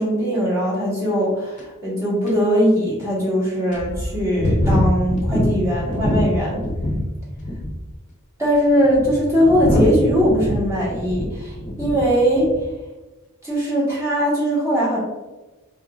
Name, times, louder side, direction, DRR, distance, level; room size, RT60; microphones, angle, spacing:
voice 1, 0.0-6.6 8.4-12.5 13.4-15.0, equal, 15° right, -7 dB, 1.2 m, -20 dB
sound 1, 1.6-1.7 2.3-2.4 3.0-3.1 3.7-7.1 7.4-7.9 8.6-12.0 12.3-12.7, left 1 dB, 35° left, 0.6 m, -23 dB
3.9 x 3.7 x 2.3 m, 1.1 s
head